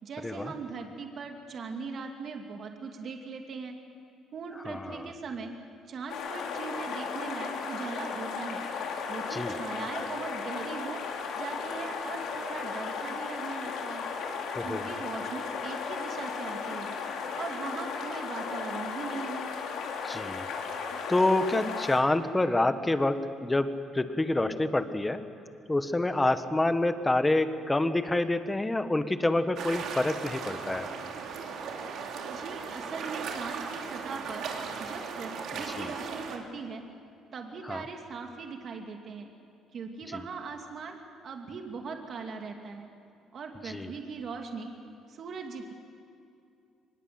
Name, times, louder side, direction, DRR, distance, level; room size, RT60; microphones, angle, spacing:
voice 1, 0.0-3.8 4.3-5.6 5.9-8.6 9.1-11.0 11.4-14.1 14.6-16.9 17.3-19.5 32.3-34.5 34.8-35.3 35.6-36.8 37.3-39.3 39.7-41.0 41.2-42.9 43.3-44.7 45.1-45.7, right 4 dB, 50° right, 3 dB, 2.4 m, -40 dB
voice 2, 4.6-5.1 9.3-9.6 14.5-14.9 20.0-20.5 21.1-25.2 25.7-30.9 35.5-35.9 37.7-37.8 40.1-40.2 43.6-43.9, left 2 dB, 10° left, 10 dB, 1.3 m, -27 dB
sound 1, 6.1-22.0, left 5 dB, 70° left, 3.3 m, -35 dB
sound 2, 29.6-36.4, right 5 dB, 65° right, 2.9 m, -37 dB
24.0 x 20.5 x 7.9 m, 2.6 s
cardioid pair, 110°, 0 cm